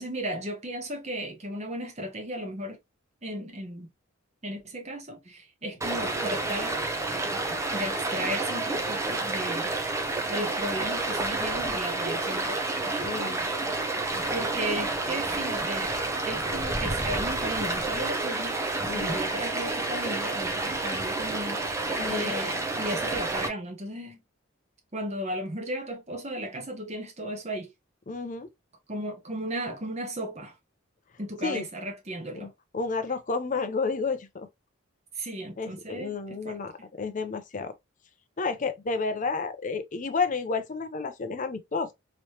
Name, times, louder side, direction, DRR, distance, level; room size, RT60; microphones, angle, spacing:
voice 1, 0.0-2.8 3.2-3.9 4.4-6.8 7.7-9.7 10.3-12.6 14.3-18.6 18.9-24.2 24.9-27.7 28.9-30.5 31.2-32.5 35.1-36.6, right 1 dB, 35° right, 1.0 m, -35 dB
Stream, 5.8-23.5, right 2 dB, 15° right, 0.6 m, -29 dB
voice 2, 13.0-13.4 18.9-19.2 22.0-22.4 28.1-28.5 31.4-31.7 32.3-32.5 32.7-34.5 35.6-36.7 37.0-37.7 38.4-41.9, left 4 dB, 40° left, 0.6 m, -31 dB
3.1 x 3.0 x 2.8 m
head